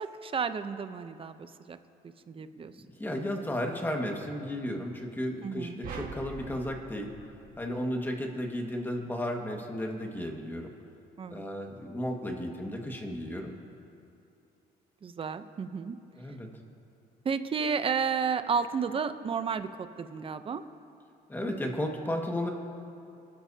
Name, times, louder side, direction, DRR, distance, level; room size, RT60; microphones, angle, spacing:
voice 1, 0.0-1.8 2.3-2.7 5.4-5.8 11.2-11.4 15.0-16.0 17.2-20.6, right 6 dB, 35° right, 10 dB, 0.7 m, -32 dB
voice 2, 3.0-7.1 7.6-10.7 11.3-13.5 16.1-16.5 21.3-22.5, left 1 dB, 10° left, 1 dB, 1.8 m, -34 dB
sound 1, 5.8-8.2, right 4 dB, 60° right, 1.6 m, -44 dB
28.5 x 12.5 x 2.8 m, 2.6 s
cardioid pair, 110°, 17 cm